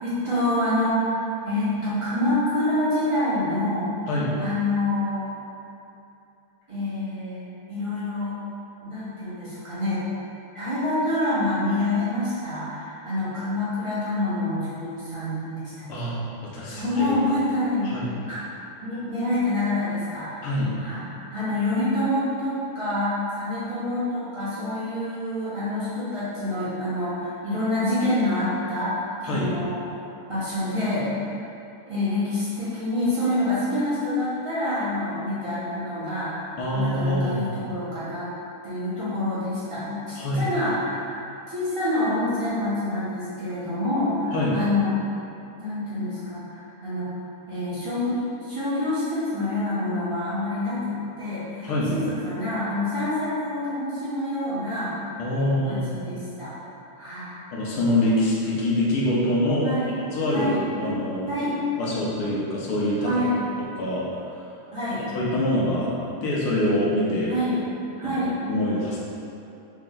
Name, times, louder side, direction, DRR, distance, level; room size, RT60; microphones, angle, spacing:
voice 1, 0.0-3.9 4.4-5.3 6.7-8.4 8.8-10.0 10.5-15.9 16.7-18.0 18.3-18.4 18.8-20.5 20.8-21.0 21.3-30.0 30.3-31.4 31.9-38.3 38.6-41.1 41.5-44.9 45.6-47.1 47.5-54.9 55.3-56.5 57.0-57.3 59.6-59.9 60.3-60.6 61.3-61.6 63.0-63.4 64.7-65.1 67.3-67.6 68.0-68.3, left 1 dB, 20° right, -14 dB, 1.0 m, -27 dB
voice 2, 4.1-4.4 15.9-17.2 17.8-18.1 20.4-20.7 29.2-29.6 36.6-37.5 40.2-40.5 44.3-44.6 51.6-52.0 55.2-55.9 57.5-60.5 60.8-61.3 61.8-63.1 63.8-64.0 65.1-65.9 66.2-67.3 68.0-68.1 68.5-69.0, left 1 dB, 75° left, -6 dB, 1.7 m, -25 dB
4.4 x 3.0 x 3.7 m, 2.7 s
omnidirectional pair, 2.4 m